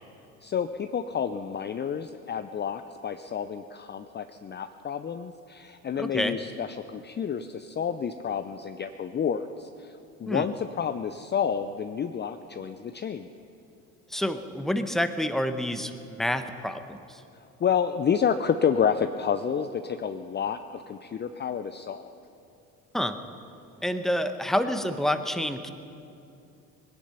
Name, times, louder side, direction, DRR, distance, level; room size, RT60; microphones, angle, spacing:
voice 1, 0.4-13.3 17.6-22.1, left 7 dB, 25° left, 9 dB, 0.6 m, -29 dB
voice 2, 6.0-6.4 10.2-10.5 14.1-17.2 22.9-23.2 23.8-25.7, left 1 dB, ahead, 9 dB, 1.0 m, -28 dB
20.0 x 10.5 x 5.7 m, 2.7 s
hypercardioid pair, 60°, 42 cm